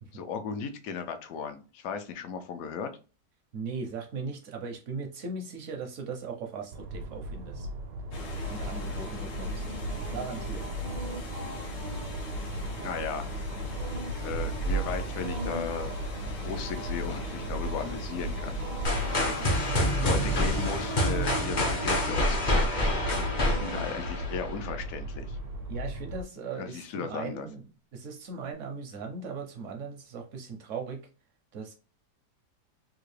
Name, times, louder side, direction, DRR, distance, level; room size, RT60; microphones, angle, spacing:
voice 1, 0.1-2.9 12.8-13.3 14.2-16.0 16.4-18.5 18.9-19.7 20.0-22.7 23.6-25.4 26.6-27.5, left 6 dB, 70° left, 8 dB, 0.9 m, -36 dB
voice 2, 3.5-7.7 8.5-9.6 10.1-10.7 25.7-27.6 27.9-31.0 31.5-31.7, right 4 dB, 65° right, 3 dB, 0.7 m, -38 dB
sound 1, 6.7-26.2, equal, 90° right, 1.3 m, -36 dB
sound 2, 8.1-21.3, right 2 dB, 85° left, 1.6 m, -39 dB
sound 3, 18.8-24.7, left 1 dB, 50° left, 0.5 m, -27 dB
3.6 x 2.4 x 3.2 m, 0.34 s
omnidirectional pair, 1.8 m